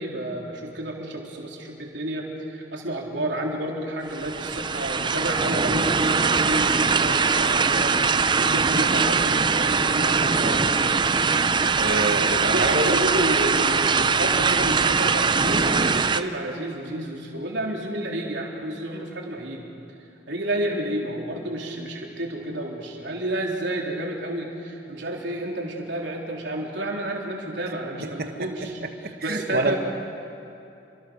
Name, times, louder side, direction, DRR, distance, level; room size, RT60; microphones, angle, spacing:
voice 1, 0.0-10.6 11.6-11.7 12.4-19.6 20.3-29.8, right 1 dB, 70° right, -1 dB, 3.8 m, -30 dB
sound 1, 4.1-16.2, right 5 dB, 25° right, 0.5 m, -22 dB
voice 2, 11.8-13.0 14.0-14.1 28.0-28.3 29.2-29.7, right 2 dB, 50° right, 5 dB, 1.6 m, -27 dB
28.0 x 24.5 x 6.5 m, 2.8 s
head